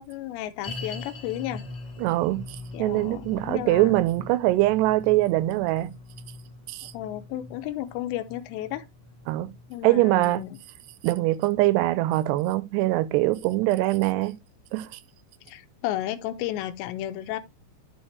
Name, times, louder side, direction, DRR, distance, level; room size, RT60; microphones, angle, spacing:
voice 1, 0.0-1.6 2.7-4.0 6.9-8.9 9.7-10.6 15.5-17.4, left 13 dB, 85° left, 3.0 m, -33 dB
sound 1, 0.6-11.9 12.2-12.3 12.9-13.0, left 2 dB, 60° left, 1.2 m, -43 dB
voice 2, 2.0-5.9 6.7-6.9 9.3-9.5 9.8-10.4 11.0-14.4 14.7-15.0, right 17 dB, 80° right, 2.6 m, -23 dB
12.0 x 4.3 x 3.2 m
omnidirectional pair, 5.2 m